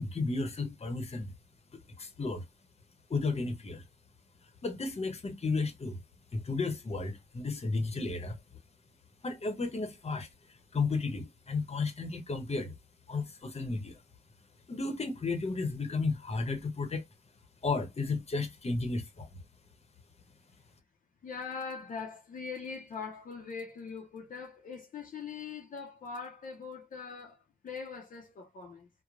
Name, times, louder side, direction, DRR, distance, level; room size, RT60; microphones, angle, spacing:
voice 1, 0.0-1.3 2.0-2.4 3.1-3.8 4.6-6.0 6.3-8.4 9.2-10.3 10.7-12.8 13.1-14.0 14.7-17.0 17.6-19.3, left 3 dB, 50° left, 0.9 m, -33 dB
voice 2, 21.2-28.9, left 5 dB, 75° left, 0.6 m, -42 dB
2.9 x 2.2 x 2.4 m
cardioid pair, 45°, 14 cm